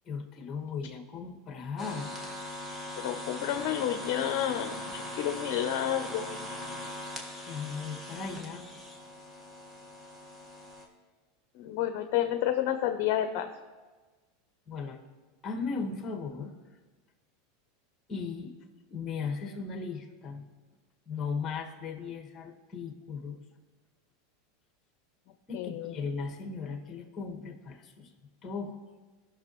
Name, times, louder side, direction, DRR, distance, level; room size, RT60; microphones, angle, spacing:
voice 1, 0.0-2.1 7.5-8.7 14.7-15.0 15.4-16.5 18.1-18.5 18.9-20.5 21.1-23.4 25.5-28.1 28.4-28.8, left 5 dB, 25° left, 3 dB, 1.4 m, -37 dB
sound 1, 1.8-10.9, left 1 dB, 10° right, 1.5 m, -41 dB
voice 2, 3.0-6.3 11.5-13.5 25.5-25.9, left 11 dB, 60° left, 8 dB, 0.6 m, -30 dB
17.0 x 6.1 x 3.0 m, 1.3 s
supercardioid pair, 130°, 0 cm